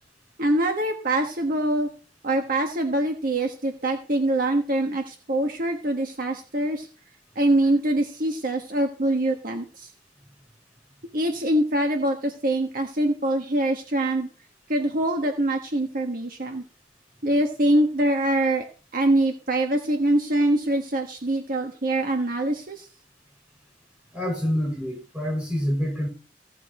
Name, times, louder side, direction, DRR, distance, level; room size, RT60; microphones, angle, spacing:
voice 1, 0.4-1.9 2.2-6.9 7.3-9.9 11.1-14.3 14.7-16.6 17.2-18.6 18.9-22.9, right 1 dB, 55° right, 1.4 m, -24 dB
voice 2, 24.1-26.1, equal, 5° right, 5.6 m, -27 dB
16.0 x 7.3 x 4.3 m
head